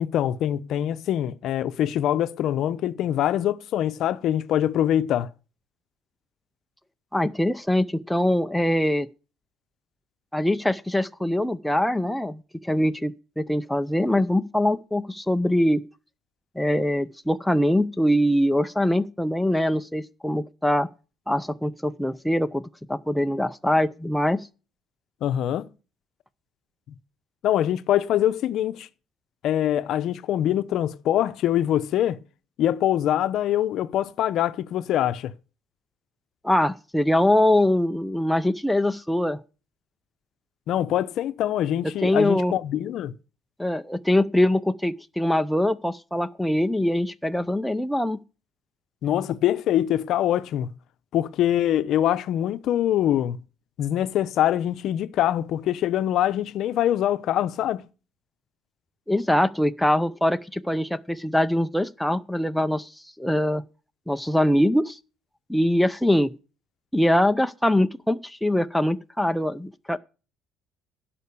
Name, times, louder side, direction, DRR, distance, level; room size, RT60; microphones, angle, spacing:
voice 1, 0.0-5.3 25.2-25.7 27.4-28.9 29.4-32.2 32.6-35.3 40.7-43.1 49.0-50.7 51.1-53.4 53.8-57.8, left 11 dB, 55° left, 0.7 m, -24 dB
voice 2, 7.1-9.1 10.3-15.8 16.6-20.9 21.3-22.6 22.9-24.5 36.4-39.4 41.8-42.5 43.6-48.2 59.1-62.9 63.2-63.6 64.1-65.0 65.5-66.3 66.9-70.0, left 1 dB, ahead, 0.5 m, -23 dB
11.5 x 5.8 x 6.8 m
cardioid pair, 130°, 0 cm